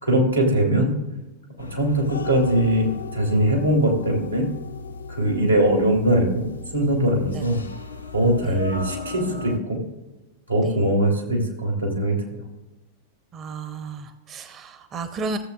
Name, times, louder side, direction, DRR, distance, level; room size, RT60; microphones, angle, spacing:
voice 1, 0.0-0.9 1.6-4.4 5.1-6.4 6.7-7.6 8.1-9.8 10.5-12.2, right 1 dB, 90° right, -1 dB, 2.8 m, -21 dB
sound 1, 1.6-9.6, left 4 dB, 80° left, 0.8 m, -36 dB
voice 2, 13.3-15.4, right 3 dB, 30° right, 10 dB, 0.8 m, -33 dB
17.0 x 7.6 x 2.4 m, 1.1 s
figure-of-eight pair, 90°, 0 cm